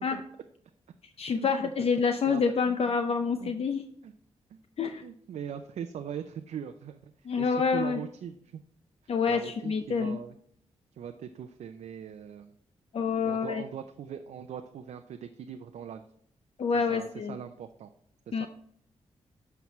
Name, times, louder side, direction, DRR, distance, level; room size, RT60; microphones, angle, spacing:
voice 1, 1.2-3.8 4.8-5.0 7.3-8.0 9.1-10.2 12.9-13.6 16.6-17.4 18.3-18.5, left 5 dB, 60° left, 7 dB, 0.6 m, -27 dB
voice 2, 2.0-2.8 3.4-3.5 4.0-4.1 4.5-4.6 5.0-7.1 7.4-8.6 9.3-10.4 11.0-12.5 13.2-16.0 16.9-17.9 18.3-18.5, right 8 dB, 80° right, 6 dB, 0.5 m, -41 dB
9.3 x 5.8 x 3.1 m, 0.67 s
cardioid pair, 70°, 12 cm